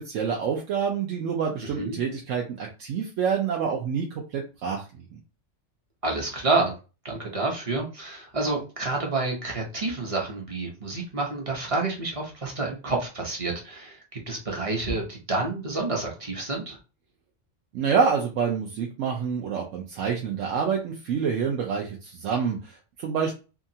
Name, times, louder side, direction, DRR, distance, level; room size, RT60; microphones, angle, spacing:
voice 1, 0.1-4.8 17.7-23.3, right 6 dB, 80° right, 0 dB, 0.9 m, -27 dB
voice 2, 6.0-6.7 7.0-16.8, right 3 dB, 35° right, 0 dB, 0.7 m, -29 dB
2.8 x 2.4 x 2.6 m, 0.31 s
omnidirectional pair, 1.3 m